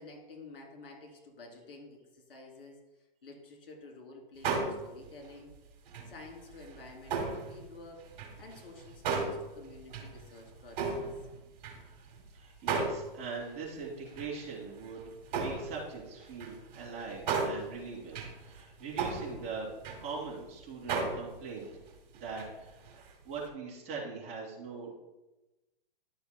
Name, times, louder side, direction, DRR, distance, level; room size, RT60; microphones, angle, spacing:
voice 1, 0.0-2.8 3.2-5.5 6.1-11.0, left 3 dB, 75° left, 0 dB, 2.8 m, -50 dB
sound 1, 4.4-5.5 5.9-7.7 8.0-12.3 12.7-13.5 14.1-20.4 20.9-22.6 22.8-23.1 23.4-23.5, right 4 dB, 45° right, 2.1 m, -36 dB
voice 2, 12.3-19.7 20.0-21.7 22.1-22.8 23.2-24.9, right 4 dB, 20° right, -4 dB, 2.5 m, -41 dB
12.0 x 6.9 x 2.2 m, 1.0 s
hypercardioid pair, 140°, 29 cm